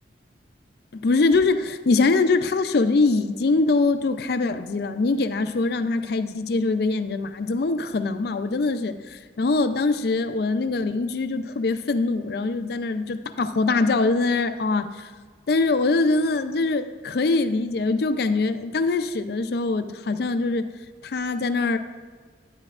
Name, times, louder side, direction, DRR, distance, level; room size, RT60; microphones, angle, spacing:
voice 1, 0.9-15.1 15.5-20.7 21.0-21.8, left 3 dB, 55° left, 10 dB, 0.4 m, -23 dB
10.5 x 9.7 x 2.4 m, 1.5 s
head